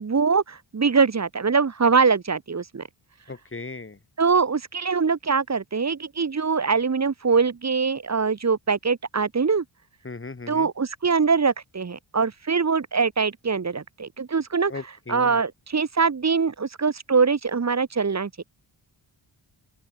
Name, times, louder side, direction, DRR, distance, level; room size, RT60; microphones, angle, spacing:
voice 1, 0.0-2.8 4.2-9.6 10.5-14.7 15.1-18.4, right 5 dB, 35° right, 0.9 m, -23 dB
voice 2, 3.3-4.0 10.0-10.7 14.7-15.4, left 3 dB, 25° left, 1.4 m, -37 dB
open air
wide cardioid pair, 65°, 47 cm